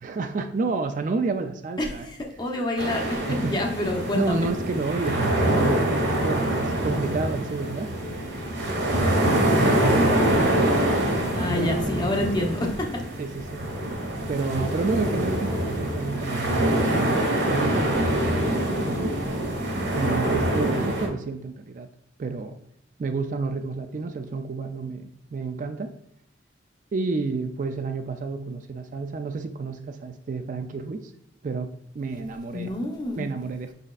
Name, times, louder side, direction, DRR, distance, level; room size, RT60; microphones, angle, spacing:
voice 1, 0.0-2.1 3.3-3.6 4.1-7.9 9.6-10.9 11.5-12.1 13.2-13.6 14.3-19.2 19.9-21.9 22.2-22.5 23.0-25.9 26.9-31.0 31.4-31.7 31.9-32.7 33.2-33.7, right 4 dB, 45° right, 7 dB, 0.3 m, -30 dB
voice 2, 1.8-4.4 11.3-13.0 32.5-33.3, left 1 dB, 25° left, 0 dB, 0.8 m, -28 dB
sound 1, 2.8-21.1, right 1 dB, 70° right, 1.4 m, -25 dB
5.2 x 4.0 x 2.4 m, 0.75 s
head